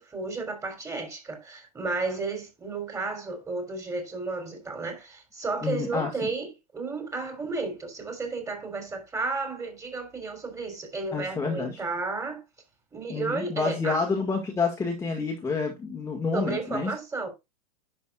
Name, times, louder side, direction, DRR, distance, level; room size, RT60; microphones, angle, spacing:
voice 1, 0.0-12.4 12.9-14.0 16.3-17.3, right 3 dB, 15° right, 3.3 m, -33 dB
voice 2, 5.6-6.1 11.1-11.8 13.1-16.9, left 4 dB, 15° left, 1.6 m, -28 dB
10.5 x 6.0 x 2.3 m
figure-of-eight pair, 90°, 20 cm